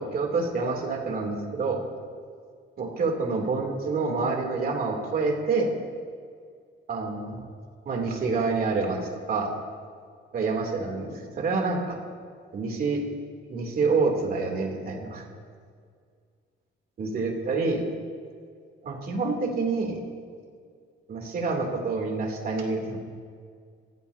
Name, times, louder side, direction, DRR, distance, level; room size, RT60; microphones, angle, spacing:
voice 1, 0.0-1.8 2.8-5.7 6.9-7.4 7.9-9.5 10.3-12.0 12.5-13.0 13.5-15.2 17.0-17.8 18.8-20.0 21.1-23.0, right 4 dB, 45° right, 1 dB, 2.8 m, -27 dB
28.0 x 15.0 x 2.7 m, 2.1 s
cardioid pair, 150°, 21 cm